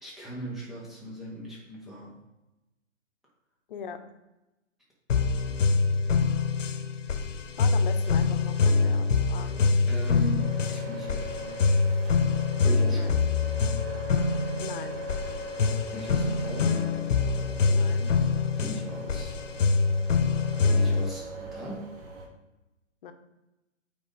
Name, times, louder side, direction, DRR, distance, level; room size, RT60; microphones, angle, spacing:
voice 1, 0.0-2.2 9.4-11.8 12.6-13.2 15.9-16.7 18.6-19.4 20.6-21.9, right 2 dB, ahead, -6 dB, 0.4 m, -39 dB
voice 2, 3.7-4.0 7.6-9.7 12.9-13.2 14.6-15.1 17.7-18.1 23.0-23.1, left 7 dB, 40° left, 8 dB, 0.8 m, -40 dB
sound 1, 5.1-21.1, left 4 dB, 70° left, 0.9 m, -25 dB
sound 2, 10.4-22.3, left 1 dB, 40° right, 2.2 m, -40 dB
8.7 x 3.7 x 3.9 m, 0.99 s
figure-of-eight pair, 130°, 39 cm